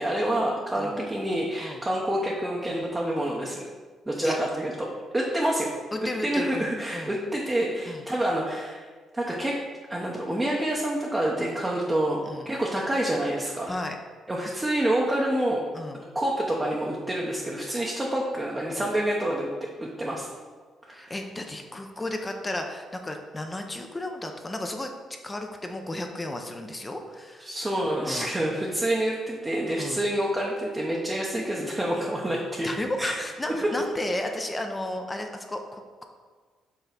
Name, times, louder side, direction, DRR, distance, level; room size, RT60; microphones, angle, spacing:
voice 1, 0.0-3.7 4.1-4.9 5.1-5.7 6.2-8.9 9.1-9.6 9.9-13.7 14.3-15.6 16.1-20.3 20.8-21.1 27.4-32.7 33.0-33.1 33.6-33.7, right 1 dB, 15° right, -3 dB, 0.8 m, -27 dB
voice 2, 5.9-7.1 7.9-8.1 12.2-12.5 13.7-14.0 15.7-16.0 18.7-18.9 20.9-24.9 25.2-27.5 28.1-28.3 29.8-30.0 32.6-36.1, left 1 dB, 15° left, 4 dB, 0.7 m, -33 dB
5.6 x 3.7 x 5.9 m, 1.5 s
cardioid pair, 105°, 0 cm